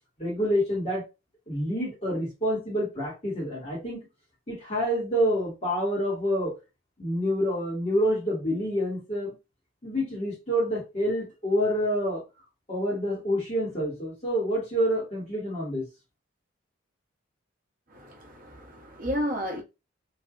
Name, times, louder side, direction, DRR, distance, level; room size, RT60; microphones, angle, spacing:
voice 1, 0.2-1.0 1.5-4.0 4.5-6.5 7.0-9.3 9.8-12.2 12.7-15.9, equal, 30° left, 1.6 m, -27 dB
voice 2, 17.9-19.6, equal, 45° right, 0.8 m, -32 dB
3.3 x 2.7 x 2.4 m
head